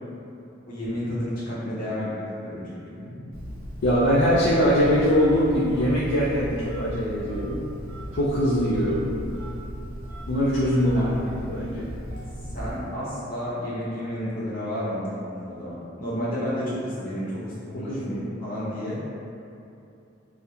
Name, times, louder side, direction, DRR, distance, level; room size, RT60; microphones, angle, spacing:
voice 1, 0.7-2.8 10.9-11.1 12.5-19.0, equal, 45° left, -9 dB, 0.7 m, -31 dB
voice 2, 3.0-3.3 3.8-7.6 8.1-9.0 10.3-11.2 11.4-11.9 17.7-18.2, equal, 65° left, -8 dB, 0.3 m, -22 dB
Telephone, 3.3-13.0, equal, 85° right, 0.5 m, -36 dB
2.9 x 2.0 x 2.3 m, 2.7 s
head